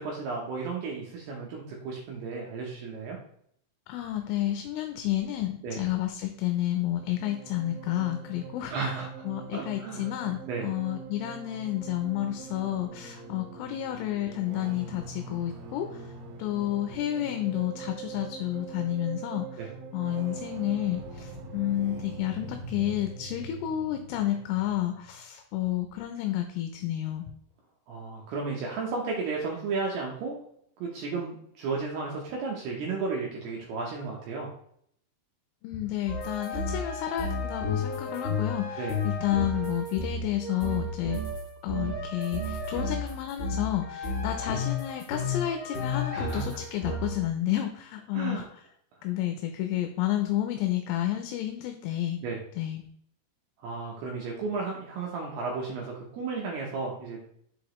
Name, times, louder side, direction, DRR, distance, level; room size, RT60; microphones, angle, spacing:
voice 1, 0.0-3.2 5.6-5.8 8.7-9.1 9.5-10.1 10.5-10.7 19.6-19.7 27.9-30.3 30.8-34.5 38.8-39.0 46.1-46.4 48.1-48.4 52.2-52.4 53.6-57.2, right 4 dB, 85° right, -1 dB, 2.3 m, -33 dB
voice 2, 3.9-16.1 16.4-27.3 35.6-41.2 41.6-48.5 49.0-52.2 52.6-52.8, left 13 dB, 85° left, 6 dB, 3.1 m, -31 dB
sound 1, 6.6-25.1, right 4 dB, 70° right, 3.1 m, -43 dB
sound 2, 36.1-47.2, left 3 dB, 45° left, 1.6 m, -32 dB
7.1 x 4.9 x 3.0 m, 0.66 s
omnidirectional pair, 5.9 m